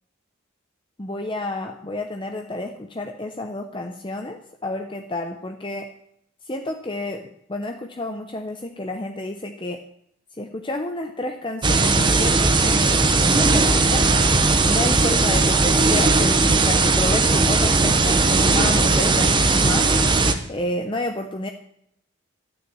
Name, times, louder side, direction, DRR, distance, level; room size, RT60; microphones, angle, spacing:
voice 1, 1.0-5.9 6.4-9.8 10.4-14.1 14.6-19.9 20.5-21.5, left 1 dB, 25° left, 4 dB, 0.8 m, -30 dB
sound 1, 11.6-20.3, right 3 dB, 20° right, 0.9 m, -18 dB
13.0 x 6.5 x 9.0 m, 0.73 s
head